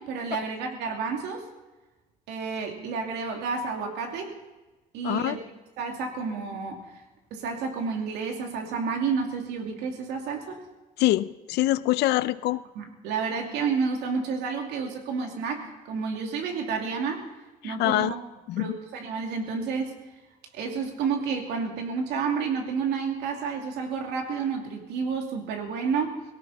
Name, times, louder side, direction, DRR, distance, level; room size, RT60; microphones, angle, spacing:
voice 1, 0.0-1.4 2.3-4.3 4.9-5.4 5.8-7.0 7.3-10.6 12.8-17.2 17.6-18.2 18.6-19.9 20.5-26.2, right 5 dB, 85° right, 2 dB, 2.7 m, -30 dB
voice 2, 5.0-5.4 11.0-12.6 17.6-18.1 18.5-18.8, left 16 dB, 80° left, 16 dB, 0.6 m, -25 dB
19.0 x 17.0 x 4.2 m, 1.1 s
cardioid pair, 110°, 17 cm